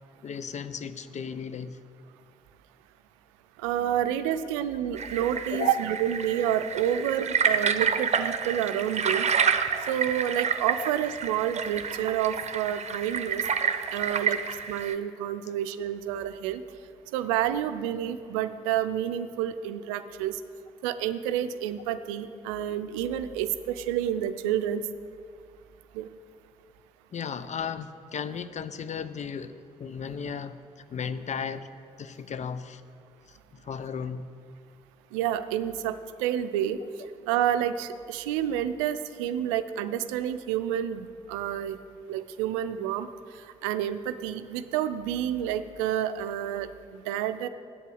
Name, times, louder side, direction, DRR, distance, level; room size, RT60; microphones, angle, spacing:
voice 1, 0.2-1.8 5.5-5.7 10.8-10.9 27.1-29.5 29.8-30.6 30.9-31.7 32.0-32.8 33.3-34.3, left 6 dB, 45° left, 13 dB, 0.7 m, -35 dB
voice 2, 3.6-9.3 9.9-13.4 13.9-14.4 14.7-16.6 17.1-20.4 20.8-24.8 25.9-26.1 35.1-36.8 37.3-41.8 42.1-43.1 43.6-47.5, right 10 dB, 80° right, 11 dB, 0.5 m, -29 dB
sound 1, 5.0-15.0, right 6 dB, 45° right, 0.8 m, -29 dB
8.1 x 7.7 x 7.9 m, 2.4 s
hypercardioid pair, 40°, 16 cm